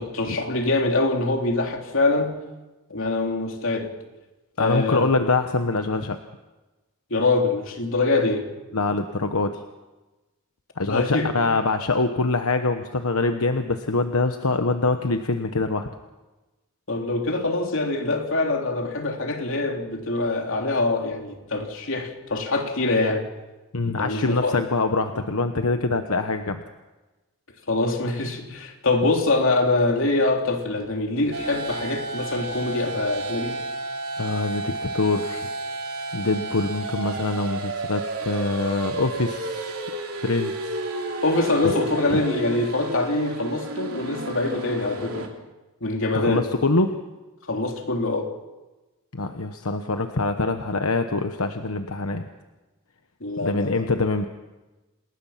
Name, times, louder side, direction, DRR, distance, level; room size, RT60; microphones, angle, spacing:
voice 1, 0.0-2.4 2.9-3.9 4.6-5.1 7.1-8.5 10.9-11.3 16.9-23.3 24.0-24.6 27.7-33.6 41.2-45.3 45.8-46.5 47.5-48.3 53.2-53.9, left 2 dB, 65° left, 3.3 m, -24 dB
voice 2, 4.6-6.2 8.7-9.6 10.8-15.9 23.7-26.6 34.2-35.5 36.1-39.7 40.1-40.8 41.6-41.7 42.1-42.2 46.1-47.0 49.1-52.3 53.4-54.3, left 3 dB, 85° left, 1.1 m, -24 dB
sound 1, 31.3-45.3, right 2 dB, 85° right, 3.2 m, -32 dB
28.0 x 20.0 x 5.8 m
head